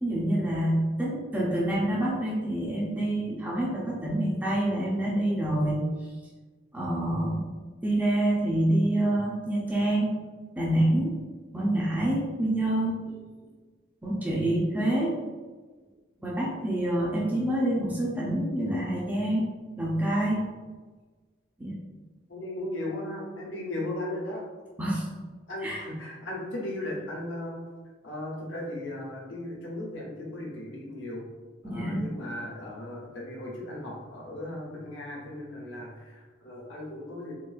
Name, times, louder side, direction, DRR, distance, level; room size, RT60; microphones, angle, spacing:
voice 1, 0.0-5.8 6.7-7.4 7.8-10.2 10.6-11.1 11.5-13.2 14.0-15.1 16.2-19.5 19.8-20.4 21.6-21.7 24.8-25.1 25.6-25.8 31.6-32.0, right 1 dB, 10° right, -5 dB, 0.4 m, -27 dB
voice 2, 16.9-17.3 22.3-24.4 25.5-27.6 28.0-31.2 31.6-37.3, left 1 dB, 80° left, -4 dB, 0.9 m, -37 dB
3.7 x 2.3 x 2.4 m, 1.4 s
head